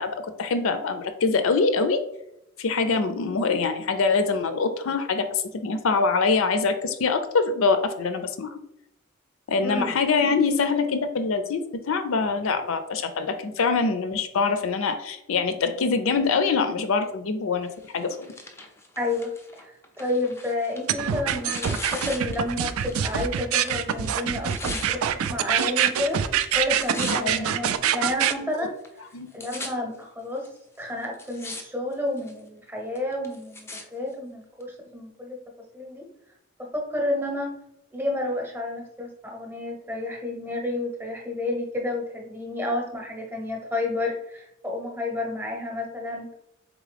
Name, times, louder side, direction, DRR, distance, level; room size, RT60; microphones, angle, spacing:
voice 1, 0.0-2.0 2.6-8.6 9.5-11.6 11.9-17.7 17.9-18.3 27.1-27.5 28.6-28.7 29.1-29.3, left 4 dB, 75° left, 9 dB, 0.5 m, -24 dB
voice 2, 9.6-9.9 19.0-26.2 26.5-28.7 29.3-30.5 30.8-35.4 35.7-36.1 36.6-37.5 37.9-46.3, left 2 dB, 10° right, 0 dB, 0.8 m, -30 dB
Tearing, 17.8-23.3 23.5-24.9 25.6-26.1 26.4-27.4 28.0-28.1 28.8-28.9 29.1-29.7 30.4-30.5 31.0-31.6 31.9-32.4 32.9-33.8 34.6-34.7, left 2 dB, 10° left, 0.4 m, -39 dB
sound 1, 20.9-28.3, right 9 dB, 90° right, 0.3 m, -25 dB
3.8 x 3.6 x 3.3 m, 0.83 s
head